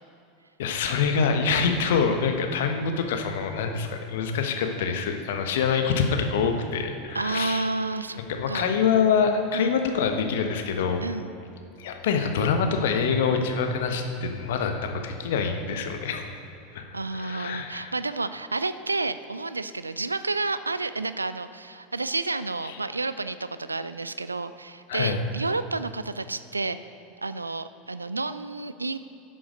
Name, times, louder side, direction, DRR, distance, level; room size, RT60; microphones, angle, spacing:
voice 1, 0.6-7.7 8.3-11.0 11.8-16.2 16.7-17.9 24.9-25.2, left 6 dB, 60° left, 5 dB, 1.1 m, -25 dB
voice 2, 7.1-8.2 8.5-8.7 9.5-9.8 11.0-11.4 16.9-26.8 27.2-29.0, right 3 dB, 85° right, 13 dB, 0.3 m, -30 dB
11.0 x 7.8 x 5.2 m, 2.9 s
figure-of-eight pair, 80°, 0 cm